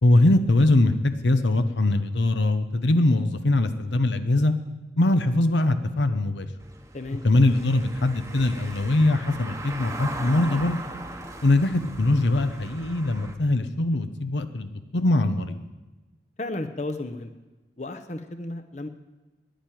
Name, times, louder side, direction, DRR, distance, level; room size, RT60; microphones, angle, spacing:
voice 1, 0.0-4.5 5.0-6.5 7.2-10.8 11.4-15.6, left 2 dB, 85° left, 9 dB, 0.8 m, -22 dB
Car passing by / Engine, 6.6-13.3, right 2 dB, 15° right, 1.0 m, -39 dB
voice 2, 16.4-17.3 17.8-18.9, left 2 dB, 40° left, 8 dB, 0.8 m, -33 dB
10.5 x 10.0 x 9.1 m, 1.1 s
head